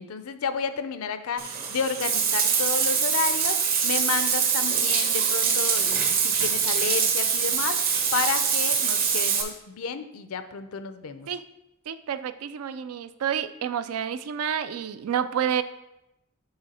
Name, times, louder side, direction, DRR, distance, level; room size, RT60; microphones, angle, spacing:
voice 1, 0.0-11.3, left 6 dB, 80° left, 10 dB, 0.5 m, -31 dB
Bathtub (filling or washing), 1.4-9.4, right 6 dB, 45° right, 0.8 m, -24 dB
voice 2, 11.9-15.6, right 8 dB, 80° right, 13 dB, 0.4 m, -29 dB
8.8 x 3.4 x 4.2 m, 0.89 s
head